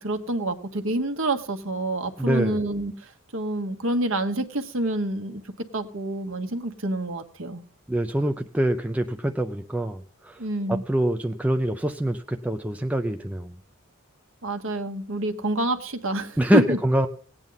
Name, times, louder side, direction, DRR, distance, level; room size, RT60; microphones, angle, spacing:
voice 1, 0.0-2.9 3.3-7.6 10.4-10.8 14.4-16.8, right 1 dB, 65° right, 6 dB, 1.3 m, -27 dB
voice 2, 2.2-2.6 7.9-10.4 10.7-13.5 16.4-17.1, right 1 dB, 5° right, 5 dB, 0.5 m, -25 dB
18.0 x 9.0 x 4.0 m, 0.43 s
head